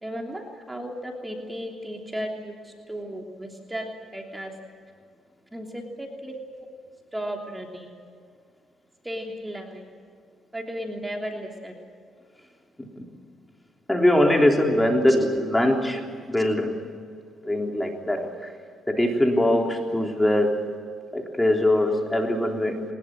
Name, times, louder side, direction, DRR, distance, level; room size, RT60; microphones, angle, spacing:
voice 1, 0.0-4.5 5.5-6.3 7.1-8.0 9.0-9.9 10.5-11.8, equal, 10° right, 1 dB, 3.2 m, -35 dB
voice 2, 13.9-16.7 17.4-18.3 18.9-20.6 21.1-22.8, left 1 dB, 10° left, 2 dB, 3.6 m, -22 dB
22.5 x 20.5 x 7.8 m, 2.2 s
cardioid pair, 90°, 0 cm